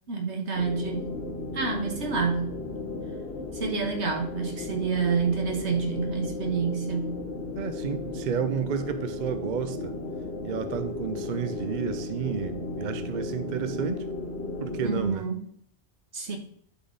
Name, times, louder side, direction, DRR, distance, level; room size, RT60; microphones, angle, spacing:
voice 1, 0.1-1.1 1.5-2.6 3.5-7.2 14.8-15.4 16.1-16.4, right 5 dB, 80° right, 2 dB, 1.8 m, -28 dB
sound 1, 0.5-15.1, left 3 dB, 70° left, 1.3 m, -35 dB
voice 2, 7.5-9.9 10.4-14.1 14.6-15.3, right 7 dB, 50° right, 9 dB, 0.7 m, -31 dB
11.5 x 3.9 x 3.9 m, 0.66 s
omnidirectional pair, 1.2 m